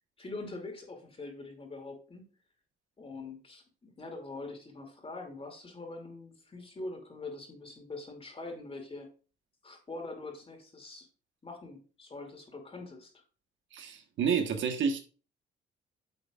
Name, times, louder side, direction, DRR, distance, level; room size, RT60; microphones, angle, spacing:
voice 1, 0.2-2.3 3.0-9.1 9.6-11.1 11.4-13.1, left 3 dB, 30° left, 3 dB, 2.6 m, -43 dB
voice 2, 13.7-15.0, right 6 dB, 75° right, 6 dB, 1.3 m, -29 dB
9.8 x 7.0 x 2.4 m, 0.36 s
cardioid pair, 90°, 20 cm